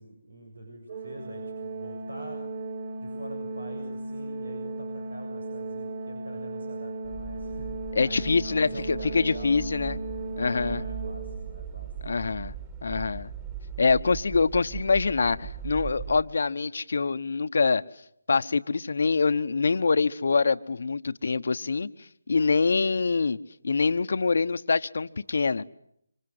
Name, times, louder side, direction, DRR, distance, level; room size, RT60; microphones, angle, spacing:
voice 1, 0.0-2.4 3.0-7.7 8.0-9.6 10.4-11.9, right 1 dB, 90° right, 4 dB, 7.3 m, -44 dB
Organ, 0.9-11.8, right 2 dB, 45° right, 1.8 m, -36 dB
sound 1, 7.0-16.2, right 8 dB, 25° right, 3.7 m, -39 dB
voice 2, 7.9-10.0 10.4-10.8 12.0-12.5 12.8-13.3 13.8-17.8 18.3-21.9 22.3-23.4 23.6-25.6, left 4 dB, 65° left, 12 dB, 1.1 m, -25 dB
27.0 x 26.0 x 8.0 m, 0.71 s
figure-of-eight pair, 155°, 0 cm